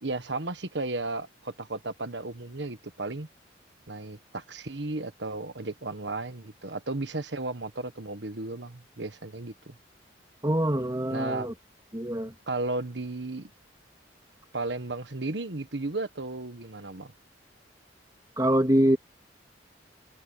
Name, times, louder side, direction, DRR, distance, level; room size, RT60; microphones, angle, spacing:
voice 1, 0.0-3.3 3.9-9.7 11.1-11.5 12.5-13.5 14.5-17.1, right 2 dB, 70° right, 1.5 m, -34 dB
voice 2, 10.4-11.5 11.9-12.3 18.4-19.0, right 1 dB, 20° right, 2.8 m, -24 dB
head